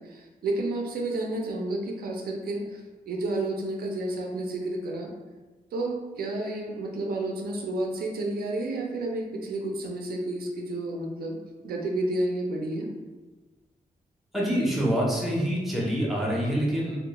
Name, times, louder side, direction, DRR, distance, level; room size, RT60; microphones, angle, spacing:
voice 1, 0.0-5.1 5.7-11.4 11.6-12.9, right 2 dB, 90° right, 1 dB, 0.4 m, -31 dB
voice 2, 14.3-17.0, equal, ahead, -5 dB, 0.4 m, -26 dB
2.2 x 2.1 x 2.9 m, 1.2 s
wide cardioid pair, 175°, 15 cm